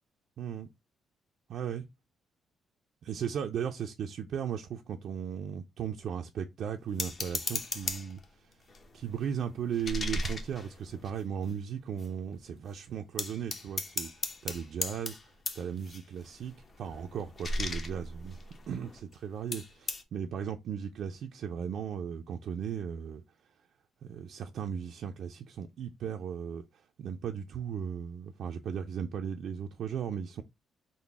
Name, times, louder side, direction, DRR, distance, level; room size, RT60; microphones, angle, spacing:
voice 1, 0.4-0.7 1.5-1.8 3.0-8.5 8.9-15.2 15.5-18.4 18.7-23.2 24.0-26.6 27.0-30.4, right 8 dB, 70° right, 0.3 m, -36 dB
sound 1, 7.0-8.3 8.7-11.5 12.0-12.1 12.3-12.7 13.2-19.2 19.5-20.0, left 2 dB, 40° left, 0.6 m, -37 dB
3.8 x 2.0 x 3.4 m
cardioid pair, 90°, 0 cm